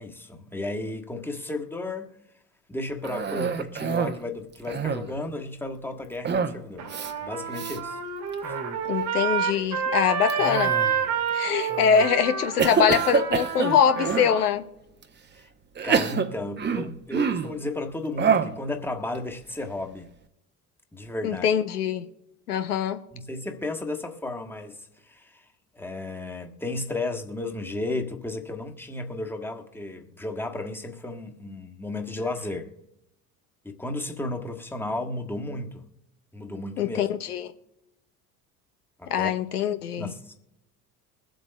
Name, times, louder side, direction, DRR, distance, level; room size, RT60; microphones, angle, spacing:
voice 1, 0.0-2.1 2.7-8.0 8.5-8.6 15.4-15.5 15.8-20.1 20.9-21.5 23.1-25.4 25.7-32.7 33.6-35.8 36.3-37.0 39.0-39.3 39.9-40.5, left 2 dB, 5° left, 1.3 m, -34 dB
Cough, 3.0-4.2 4.6-5.2 6.2-6.6 6.9-7.1 7.5-7.8 8.3-8.8 10.3-11.1 11.7-12.1 12.6-14.3 15.0-15.1 15.7-17.6 18.2-18.6, right 6 dB, 25° right, 0.8 m, -27 dB
Trumpet, 6.8-14.4, right 7 dB, 80° right, 1.6 m, -29 dB
voice 2, 8.8-10.7 11.3-14.7 21.2-22.1 22.5-23.0 36.8-37.5 39.1-40.1, left 8 dB, 85° left, 0.6 m, -23 dB
22.5 x 7.8 x 2.2 m
figure-of-eight pair, 60°, 44 cm